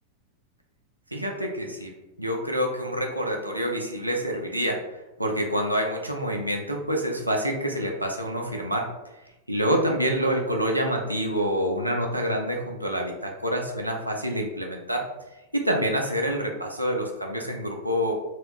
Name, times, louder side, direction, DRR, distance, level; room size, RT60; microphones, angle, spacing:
voice 1, 1.1-1.9 2.2-4.8 5.2-8.9 9.5-15.1 15.5-18.1, equal, 85° right, 1 dB, 0.4 m, -27 dB
2.2 x 2.0 x 3.4 m, 1.0 s
figure-of-eight pair, 90°, 0 cm